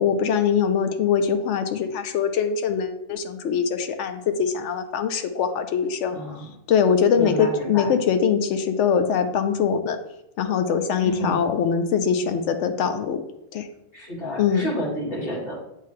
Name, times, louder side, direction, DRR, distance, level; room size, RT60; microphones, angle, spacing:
voice 1, 0.0-6.2 6.7-10.0 10.4-13.2 13.5-13.7 14.4-14.7, left 7 dB, 85° left, 8 dB, 0.9 m, -22 dB
voice 2, 6.1-6.5 7.1-7.9 11.0-11.5 13.9-15.5, equal, 50° left, -6 dB, 2.4 m, -30 dB
8.3 x 3.6 x 3.2 m, 0.83 s
omnidirectional pair, 1.2 m